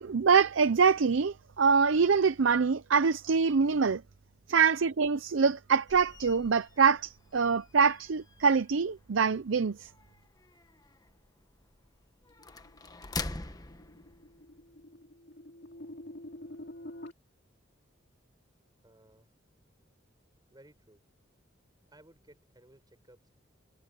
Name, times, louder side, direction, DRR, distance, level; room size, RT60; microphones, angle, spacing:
voice 1, 0.0-4.0 4.5-9.9, right 5 dB, 75° right, 0.6 m, -25 dB
sound 1, 5.9-14.8, left 3 dB, 20° left, 1.2 m, -45 dB
sound 2, 12.4-17.1, left 1 dB, 60° left, 2.9 m, -47 dB
voice 2, 18.8-19.4 20.5-21.0 21.9-23.3, right 1 dB, 20° right, 7.2 m, -59 dB
head